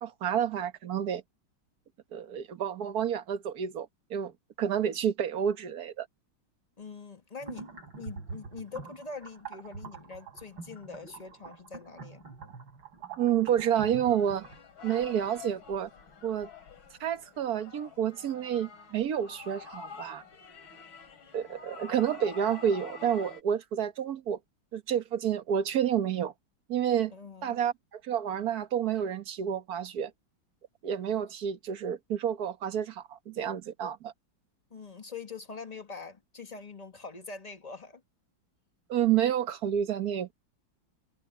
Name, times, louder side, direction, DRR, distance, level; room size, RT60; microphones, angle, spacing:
voice 1, 0.0-1.2 2.1-4.3 4.6-6.1 13.2-14.5 14.8-15.9 16.2-16.5 17.0-20.2 21.3-24.4 24.7-26.3 26.7-27.1 27.4-30.1 30.8-34.1 38.9-40.3, right 9 dB, 55° right, 1.7 m, -29 dB
voice 2, 6.8-7.7 8.0-12.2 27.1-27.6 34.7-38.0, left 4 dB, 20° left, 1.5 m, -43 dB
sound 1, 7.4-14.6, right 4 dB, 80° right, 4.3 m, -45 dB
sound 2, 13.6-23.4, left 5 dB, 85° left, 3.8 m, -48 dB
omnidirectional pair, 2.1 m